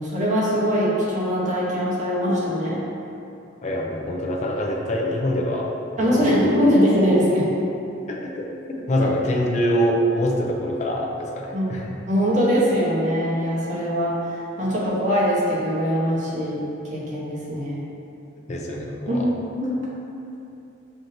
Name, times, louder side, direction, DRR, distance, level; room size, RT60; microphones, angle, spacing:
voice 1, 0.0-2.8 6.0-7.5 11.5-11.7 12.1-14.1 14.6-16.6 16.9-17.8 19.1-19.8, equal, 40° right, -7 dB, 0.9 m, -22 dB
voice 2, 3.6-5.7 6.0-6.4 8.1-11.9 18.5-19.3, equal, 40° left, -1 dB, 0.4 m, -25 dB
5.8 x 2.6 x 2.6 m, 2.7 s
head